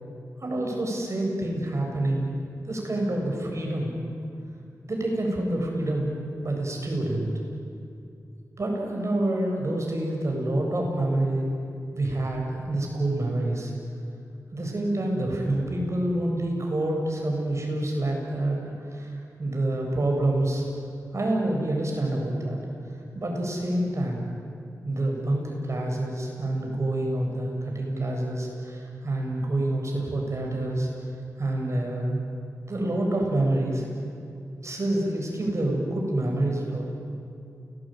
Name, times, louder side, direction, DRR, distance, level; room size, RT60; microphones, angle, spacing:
voice 1, 0.4-2.3 2.6-4.0 4.9-7.3 8.6-11.5 11.9-13.7 14.5-18.6 18.9-20.6 21.1-22.6 23.1-24.2 24.8-30.9 31.4-32.2 32.7-33.8 34.6-36.9, right 1 dB, 50° right, 0 dB, 7.9 m, -27 dB
29.0 x 20.0 x 9.4 m, 2.5 s
cardioid pair, 65°, 6 cm